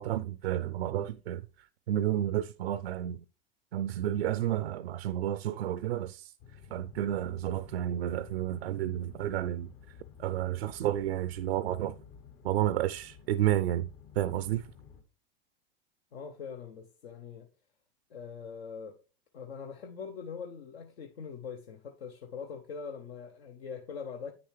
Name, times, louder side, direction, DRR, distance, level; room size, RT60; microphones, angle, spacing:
voice 1, 0.0-1.4 1.9-3.2 3.7-6.3 6.7-9.7 10.2-12.0 12.4-13.9 14.2-14.7, right 12 dB, 85° right, 0.5 m, -31 dB
sound 1, 6.4-15.0, left 7 dB, 60° left, 1.4 m, -52 dB
voice 2, 16.1-17.5 18.1-19.0 19.3-24.3, left 6 dB, 85° left, 0.9 m, -42 dB
8.5 x 6.9 x 3.2 m
hypercardioid pair, 90°, 30 cm